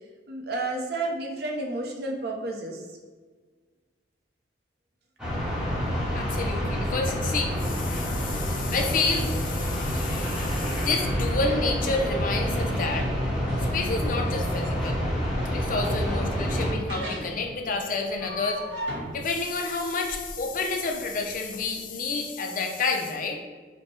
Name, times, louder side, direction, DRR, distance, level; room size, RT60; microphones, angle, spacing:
voice 1, 0.3-2.8, right 2 dB, 55° right, 1 dB, 0.6 m, -31 dB
sound 1, 5.2-16.7, equal, 5° right, 1.0 m, -28 dB
voice 2, 6.1-13.1 13.7-15.0 15.5-18.6 19.1-23.4, left 3 dB, 45° left, 3 dB, 0.5 m, -29 dB
sound 2, 12.2-21.6, equal, 85° right, 1.1 m, -39 dB
5.1 x 2.1 x 3.2 m, 1.4 s
head